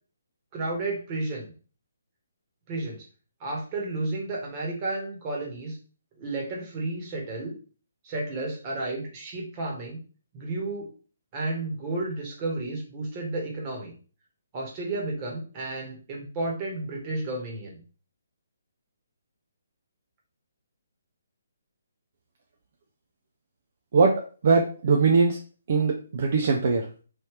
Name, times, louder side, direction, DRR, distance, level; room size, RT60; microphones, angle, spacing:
voice 1, 0.5-1.5 2.7-3.1 3.4-5.8 6.2-7.5 8.0-10.0 10.3-10.9 11.3-13.9 14.5-17.8, right 2 dB, 30° right, -1 dB, 1.3 m, -32 dB
voice 2, 23.9-25.4 25.7-26.9, right 4 dB, 50° right, 2 dB, 0.5 m, -21 dB
3.2 x 2.7 x 3.2 m, 0.38 s
figure-of-eight pair, 140°, 0 cm